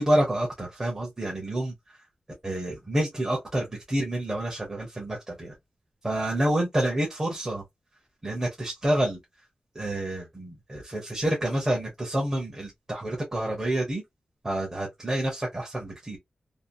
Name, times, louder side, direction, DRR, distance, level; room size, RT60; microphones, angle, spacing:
voice 1, 0.0-1.7 2.4-5.5 6.0-7.6 8.2-9.2 9.7-14.0 14.4-16.2, right 1 dB, 20° right, 0.9 m, -28 dB
2.8 x 2.0 x 2.6 m
wide cardioid pair, 155°, 2 cm